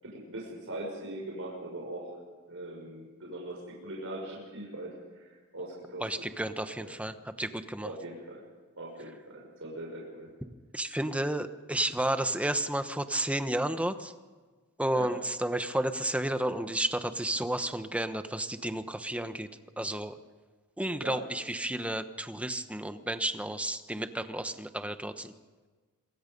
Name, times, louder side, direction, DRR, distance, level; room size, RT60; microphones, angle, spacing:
voice 1, 0.0-2.2 2.5-6.2 6.7-6.9 7.8-8.5 8.8-10.3 14.9-15.1 21.0-21.2, right 1 dB, 65° right, -3 dB, 5.8 m, -41 dB
voice 2, 6.0-7.9 10.7-14.1 14.8-19.5 19.8-20.2 20.8-25.3, right 1 dB, 5° right, 9 dB, 1.0 m, -32 dB
27.0 x 22.5 x 5.4 m, 1.4 s
head